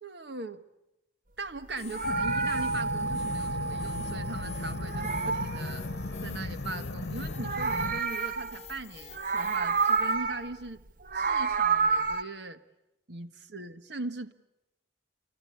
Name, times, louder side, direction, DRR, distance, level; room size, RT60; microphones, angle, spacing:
voice 1, 0.0-0.6 1.4-5.9 6.2-10.8 11.1-12.6 13.1-14.3, right 2 dB, 65° right, 10 dB, 1.4 m, -40 dB
Meow, 1.7-4.4 4.7-6.3 7.2-8.8 9.1-10.5 10.9-12.2, right 5 dB, 45° right, 1.0 m, -30 dB
sound 1, 1.8-10.2, left 8 dB, 35° left, 1.1 m, -49 dB
sound 2, 2.0-8.0, equal, 70° left, 1.0 m, -33 dB
28.0 x 24.5 x 8.5 m, 0.90 s
head